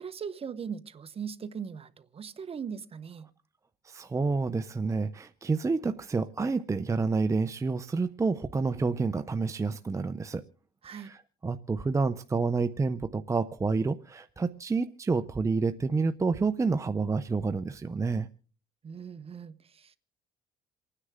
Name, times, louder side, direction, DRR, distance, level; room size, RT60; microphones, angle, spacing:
voice 1, 0.0-3.3 10.8-11.1 18.8-20.0, right 7 dB, 35° right, 1.1 m, -39 dB
voice 2, 3.8-10.4 10.9-18.3, right 4 dB, 20° right, 0.6 m, -29 dB
28.0 x 9.8 x 3.7 m
cardioid pair, 110°, 17 cm